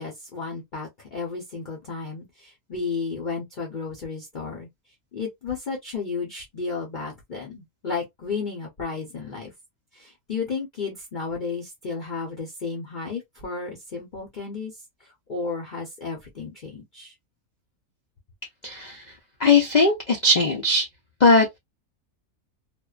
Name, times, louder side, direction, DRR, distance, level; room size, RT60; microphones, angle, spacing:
voice 1, 0.0-4.7 5.1-9.5 9.9-14.7 15.3-17.1, left 4 dB, 45° left, 0.7 m, -33 dB
voice 2, 18.6-19.0 19.4-20.9 21.2-21.6, left 3 dB, 85° left, 0.4 m, -19 dB
2.5 x 2.1 x 2.3 m
omnidirectional pair, 1.6 m